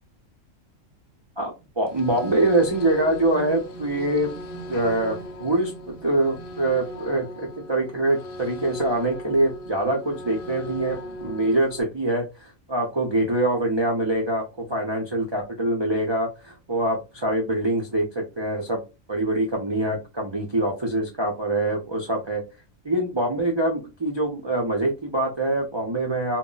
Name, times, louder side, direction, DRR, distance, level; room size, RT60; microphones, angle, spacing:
voice 1, 1.4-4.3 4.7-18.8 19.1-22.4 22.8-26.4, right 1 dB, 50° right, -1 dB, 0.3 m, -24 dB
sound 1, 1.9-11.8, equal, 60° left, 0.6 m, -37 dB
2.1 x 2.1 x 3.8 m, 0.27 s
omnidirectional pair, 1.4 m